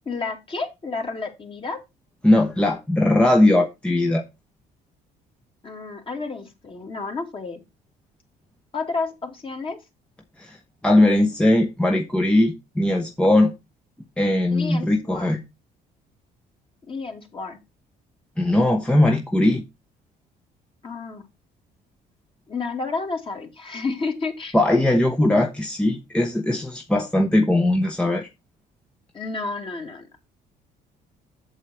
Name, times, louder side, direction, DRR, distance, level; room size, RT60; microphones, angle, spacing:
voice 1, 0.1-1.8 5.6-7.6 8.7-9.8 14.5-15.3 16.8-17.6 20.8-21.3 22.5-24.6 29.1-30.3, left 4 dB, 30° left, 2.5 m, -31 dB
voice 2, 2.2-4.2 10.4-10.6 10.8-13.5 14.2-15.4 18.4-19.6 24.5-28.3, left 1 dB, 5° left, 0.9 m, -19 dB
8.1 x 7.4 x 4.2 m
cardioid pair, 110°, 17 cm